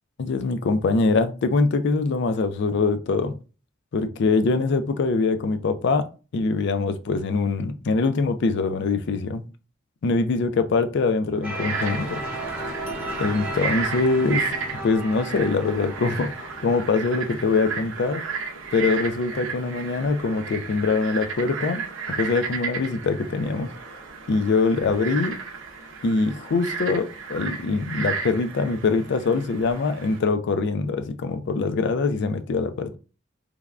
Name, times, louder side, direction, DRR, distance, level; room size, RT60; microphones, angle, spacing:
voice 1, 0.2-3.4 3.9-6.1 6.3-9.5 10.0-12.2 13.2-14.5 14.8-18.2 18.7-23.7 24.3-25.4 26.0-33.0, left 4 dB, 60° left, 0.4 m, -23 dB
sound 1, 11.4-18.2, right 1 dB, 10° right, 0.7 m, -35 dB
Frog, 11.4-30.2, right 5 dB, 70° right, 0.6 m, -34 dB
3.3 x 2.2 x 2.4 m
head